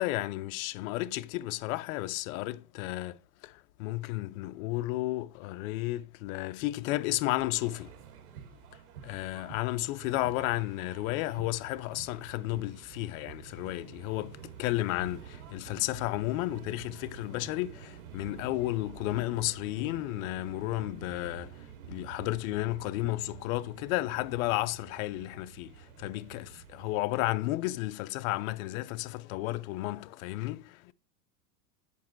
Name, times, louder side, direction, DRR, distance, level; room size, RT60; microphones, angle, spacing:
voice 1, 0.0-3.5 3.8-7.9 9.0-21.5 21.9-30.9, left 17 dB, 65° left, 0.6 m, -33 dB
sound 1, 7.4-27.0, right 9 dB, 75° right, 2.7 m, -49 dB
8.4 x 5.4 x 4.5 m
supercardioid pair, 130°, 45 cm